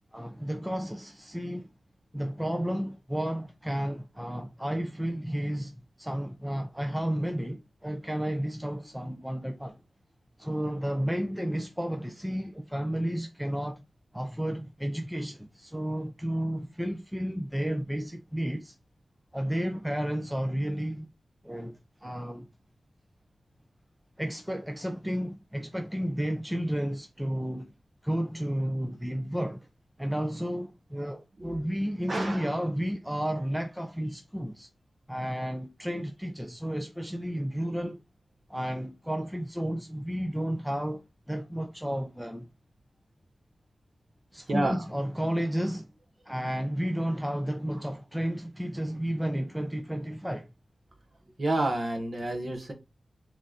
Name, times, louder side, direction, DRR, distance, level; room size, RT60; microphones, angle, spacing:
voice 1, 0.1-1.7 2.1-9.8 10.4-13.8 14.1-18.8 19.3-21.1 21.4-22.5 24.2-27.7 28.0-29.7 30.0-34.7 35.1-38.0 38.5-42.5 44.3-45.9 46.3-50.5, equal, 5° right, 0.4 m, -32 dB
voice 2, 32.1-32.5 44.5-44.8 51.4-52.7, right 1 dB, 30° right, 1.1 m, -29 dB
4.0 x 3.1 x 3.7 m
wide cardioid pair, 160°, 0 cm